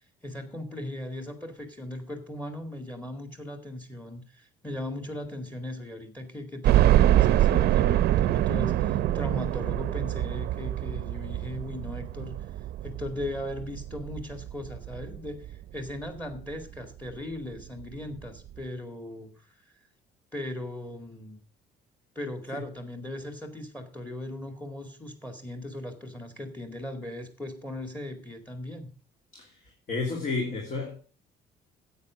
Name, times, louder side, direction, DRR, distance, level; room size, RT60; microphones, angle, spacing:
voice 1, 0.2-12.4 12.8-19.3 20.3-21.4 22.2-28.9, left 1 dB, 10° left, 2.1 m, -38 dB
sound 1, 6.6-15.6 16.0-16.1 16.5-16.6 17.8-17.9 18.2-18.3, right 13 dB, 70° right, 0.7 m, -25 dB
voice 2, 29.9-31.0, left 3 dB, 45° left, 3.0 m, -31 dB
9.7 x 8.4 x 6.3 m
cardioid pair, 110°, 17 cm